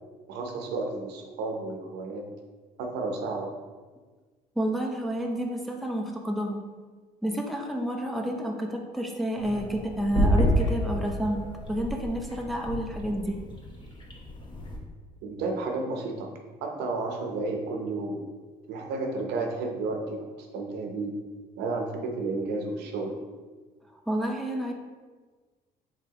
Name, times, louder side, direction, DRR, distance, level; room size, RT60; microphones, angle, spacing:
voice 1, 0.3-2.2 2.8-3.5 15.2-16.3 16.6-18.2 18.7-20.2 20.5-21.1 21.5-23.1, right 3 dB, 85° right, 2 dB, 0.8 m, -32 dB
voice 2, 4.6-6.6 7.2-13.4 24.1-24.7, right 1 dB, ahead, 1 dB, 0.5 m, -30 dB
sound 1, 9.4-14.8, equal, 30° left, 0.9 m, -29 dB
4.9 x 3.5 x 2.9 m, 1.4 s
cardioid pair, 110°, 17 cm